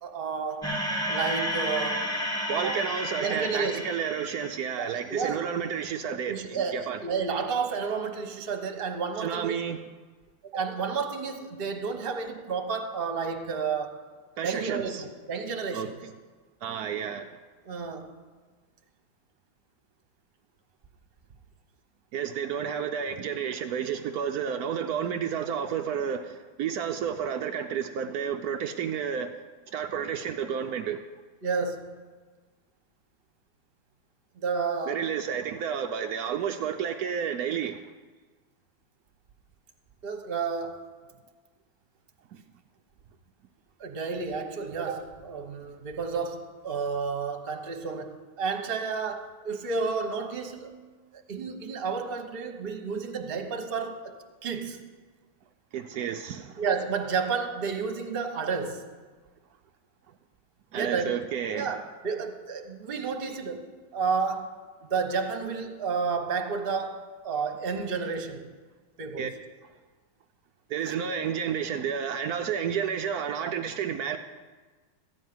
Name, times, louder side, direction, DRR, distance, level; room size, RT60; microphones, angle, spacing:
voice 1, 0.0-0.7 1.1-2.1 2.5-2.8 3.2-3.9 4.8-5.5 6.3-9.6 10.4-14.0 14.4-15.9 17.6-18.1 31.4-32.0 34.4-35.1 40.0-40.8 43.8-50.8 51.1-54.1 54.4-54.9 56.6-58.9 60.7-61.1 61.5-64.6 64.8-68.5 69.0-69.3, right 5 dB, 40° right, 5 dB, 0.9 m, -31 dB
sound 1, 0.6-5.0, equal, ahead, 1.4 m, -31 dB
voice 2, 2.5-7.0 9.2-9.8 14.4-15.0 15.7-16.1 16.6-17.3 22.1-29.3 29.7-31.0 34.9-37.8 55.7-56.6 60.7-61.7 69.2-69.3 70.7-74.2, right 8 dB, 90° right, 5 dB, 0.8 m, -31 dB
13.5 x 5.4 x 9.3 m, 1.4 s
omnidirectional pair, 2.3 m